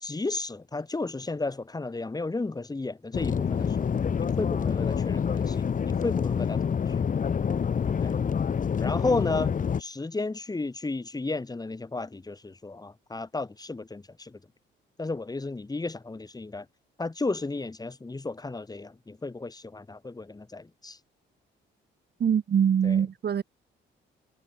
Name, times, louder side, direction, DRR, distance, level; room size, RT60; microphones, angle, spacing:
voice 1, 0.0-3.9 4.2-6.6 8.0-8.2 8.8-9.5 9.8-14.4 15.0-16.7 17.0-21.0 22.8-23.0, left 3 dB, 20° left, 3.6 m, -33 dB
sound 1, 3.1-9.8, left 7 dB, 40° left, 1.5 m, -27 dB
voice 2, 22.2-23.4, right 8 dB, 55° right, 7.2 m, -23 dB
cardioid pair, 90°, 20 cm